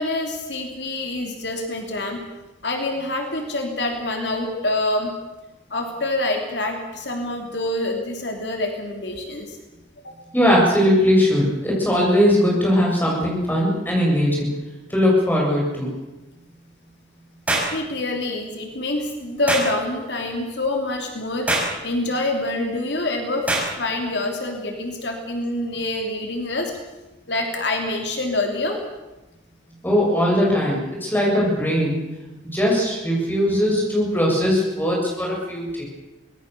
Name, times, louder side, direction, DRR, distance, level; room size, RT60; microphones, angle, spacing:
voice 1, 0.0-2.2 2.6-5.1 5.7-9.6 10.0-10.1 17.7-26.7 27.3-28.8 35.3-35.4, left 2 dB, 70° left, 3 dB, 3.0 m, -26 dB
voice 2, 10.3-14.5 14.9-15.9 29.8-32.0 32.5-35.8, equal, 10° left, -3 dB, 7.5 m, -19 dB
sound 1, 17.5-17.7 19.5-19.7 21.5-21.7 23.5-23.7, right 1 dB, 10° right, 6.3 m, -22 dB
25.0 x 19.5 x 6.9 m, 1.1 s
head